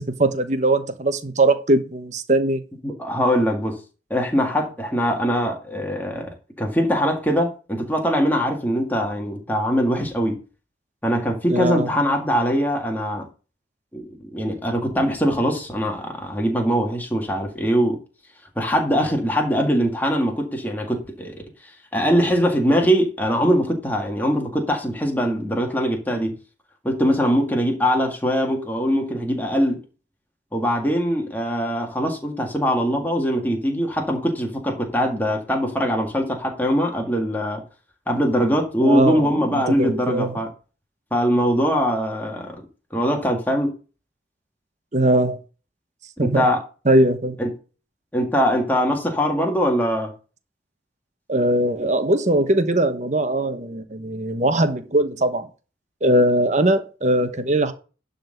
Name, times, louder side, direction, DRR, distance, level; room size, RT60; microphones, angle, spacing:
voice 1, 0.0-2.6 11.5-11.9 38.8-40.4 44.9-45.4 46.2-46.5 46.9-47.4 51.3-55.5 56.0-57.7, right 1 dB, 40° right, 1.1 m, -20 dB
voice 2, 2.8-3.8 4.1-6.3 6.6-10.4 11.0-13.3 13.9-14.1 14.3-18.0 18.6-21.4 21.9-26.3 26.8-29.8 30.5-37.6 38.1-40.5 41.1-42.6 42.9-43.7 46.2-46.6 47.4-47.5 48.1-50.1, equal, 10° left, 1.9 m, -22 dB
11.5 x 4.1 x 6.6 m
head